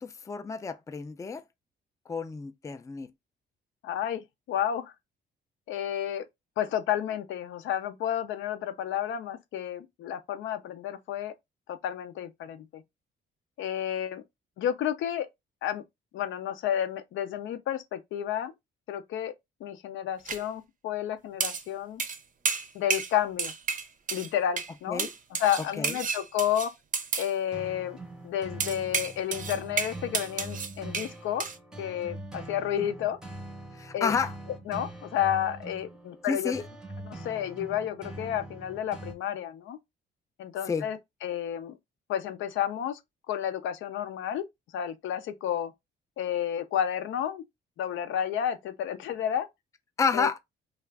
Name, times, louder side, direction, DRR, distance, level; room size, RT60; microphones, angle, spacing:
voice 1, 0.0-1.4 2.1-3.1 24.9-25.1 25.8-26.0 33.8-34.3 36.3-36.6 40.7-40.9 50.0-50.4, left 5 dB, 15° left, 0.4 m, -30 dB
voice 2, 3.8-4.9 5.7-6.2 6.6-11.3 11.7-12.8 13.6-14.2 14.6-15.3 15.6-15.8 16.1-18.5 18.9-19.3 19.6-22.0 22.7-23.5 24.1-25.1 25.4-26.7 27.2-28.0 28.2-31.4 31.8-33.2 33.9-34.1 34.7-36.5 37.1-39.8 40.4-41.7 42.1-43.0 43.3-44.4 44.7-45.7 46.2-47.4 47.8-49.5 50.1-50.3, left 10 dB, 80° left, 0.5 m, -31 dB
sound 1, 20.3-20.4 21.4-21.7 22.0-22.2 22.4-23.1 23.4-24.3 24.6-24.7 25.0-27.3 28.6-31.1 31.4-31.6, right 5 dB, 40° right, 0.6 m, -31 dB
sound 2, 27.5-39.1, right 1 dB, 5° right, 0.7 m, -43 dB
2.4 x 2.4 x 3.2 m
cardioid pair, 90°, 20 cm